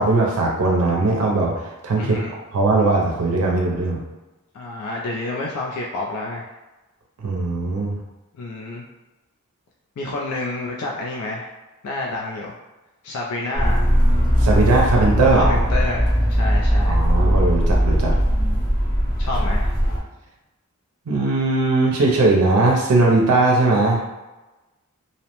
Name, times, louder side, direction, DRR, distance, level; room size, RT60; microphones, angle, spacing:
voice 1, 0.0-2.2 2.5-4.0 7.2-8.0 14.4-15.5 16.9-18.2 21.1-24.0, right 3 dB, 90° right, -1 dB, 0.5 m, -19 dB
voice 2, 2.0-2.3 4.5-6.4 8.3-8.8 10.0-11.5 11.8-12.5 13.0-13.9 15.4-17.0 19.2-19.7, left 2 dB, 80° left, -2 dB, 0.4 m, -29 dB
sound 1, 13.5-20.0, equal, 40° left, 0.7 m, -19 dB
2.7 x 2.0 x 2.9 m, 1.1 s
head